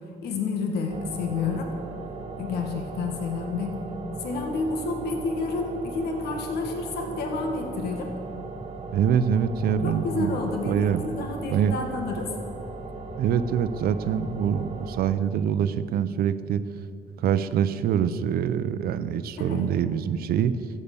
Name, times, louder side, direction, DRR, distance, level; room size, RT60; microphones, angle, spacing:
voice 1, 0.2-1.7 2.3-3.8 4.2-8.1 9.8-12.3 19.4-19.6, left 4 dB, 75° left, 3 dB, 1.7 m, -30 dB
sound 1, 0.9-15.2, right 3 dB, 35° right, 1.8 m, -38 dB
voice 2, 8.9-10.4 10.7-11.0 11.5-11.7 13.2-16.6 17.2-20.6, right 8 dB, 65° right, 13 dB, 0.6 m, -24 dB
13.5 x 8.5 x 6.8 m, 2.5 s
cardioid pair, 110°, 17 cm